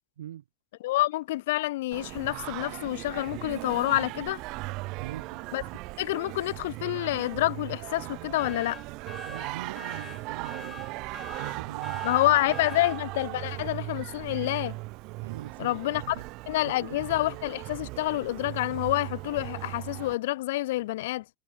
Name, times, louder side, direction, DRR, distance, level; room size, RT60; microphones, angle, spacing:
voice 1, 0.8-4.4 5.5-5.6 6.0-8.8 12.0-14.8 15.6-16.2 16.5-21.2, left 17 dB, 70° left, 0.3 m, -28 dB
Singing, 1.9-20.2, right 23 dB, 50° right, 0.9 m, -38 dB
voice 2, 5.0-5.4 9.2-11.1 11.4-12.2 12.5-12.6 15.2-16.2 16.6-17.0, right 11 dB, 90° right, 1.7 m, -42 dB
sound 1, 8.4-13.0, left 5 dB, 15° left, 3.5 m, -45 dB
supercardioid pair, 130°, 0 cm